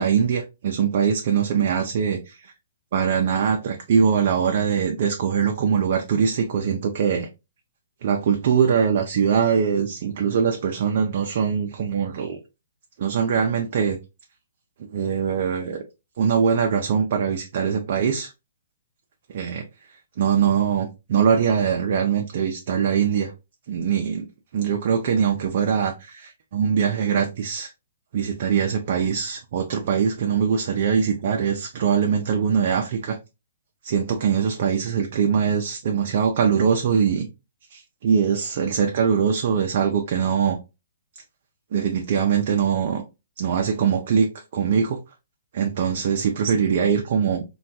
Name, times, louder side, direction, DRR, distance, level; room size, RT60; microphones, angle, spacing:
voice 1, 0.0-2.5 2.9-7.3 8.0-12.4 13.0-14.0 14.8-15.8 16.2-18.3 19.3-19.6 20.2-23.3 23.7-24.3 24.5-27.7 28.1-33.2 33.8-37.3 37.7-40.6 41.7-43.0 43.4-45.0 45.5-47.4, right 7 dB, 45° right, 0.4 m, -22 dB
3.3 x 2.2 x 2.7 m
hypercardioid pair, 170°, 0 cm